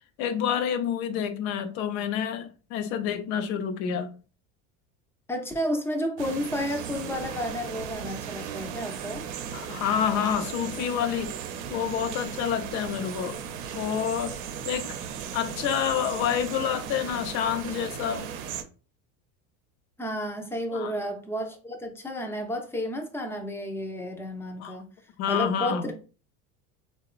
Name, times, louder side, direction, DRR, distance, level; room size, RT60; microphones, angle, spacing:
voice 1, 0.2-4.1 9.5-11.3 11.7-13.4 13.7-14.3 14.6-14.9 15.3-18.3 20.7-20.9 24.6-24.8 25.2-25.9, left 8 dB, 65° left, 0.6 m, -28 dB
voice 2, 5.3-9.3 20.0-24.9 25.3-25.9, equal, 5° left, 0.5 m, -31 dB
sound 1, 6.2-18.6, right 8 dB, 70° right, 0.6 m, -36 dB
2.8 x 2.2 x 2.4 m
hypercardioid pair, 85°, 43 cm